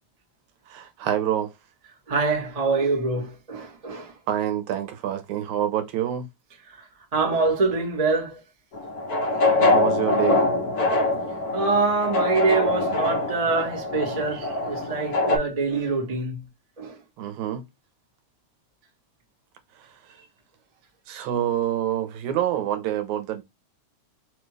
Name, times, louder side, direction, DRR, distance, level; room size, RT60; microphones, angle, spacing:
voice 1, 0.7-1.5 4.3-6.3 9.6-10.5 14.3-14.6 17.2-17.7 19.8-20.3 21.1-23.4, right 11 dB, 80° right, 2.1 m, -27 dB
voice 2, 2.1-4.1 7.1-8.4 9.2-9.5 11.2-16.4 16.8-17.0, right 4 dB, 60° right, 0.4 m, -25 dB
sound 1, 8.7-15.4, left 2 dB, 55° left, 1.0 m, -24 dB
4.7 x 2.4 x 3.1 m
omnidirectional pair, 3.3 m